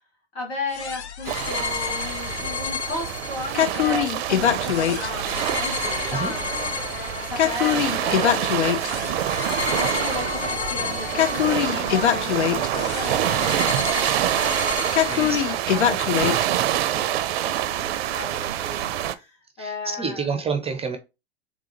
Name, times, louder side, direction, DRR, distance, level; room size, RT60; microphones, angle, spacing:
voice 1, 0.3-9.2 9.6-20.3, left 2 dB, 65° left, 2.4 m, -35 dB
sound 1, 0.7-16.5, left 10 dB, 85° left, 0.5 m, -26 dB
sound 2, 1.2-19.1, right 12 dB, 65° right, 0.5 m, -26 dB
sound 3, 5.8-13.2, left 1 dB, 25° left, 1.8 m, -35 dB
voice 2, 15.1-15.6 19.6-21.0, right 5 dB, 20° right, 0.6 m, -29 dB
3.7 x 3.6 x 2.9 m
hypercardioid pair, 85°, 33 cm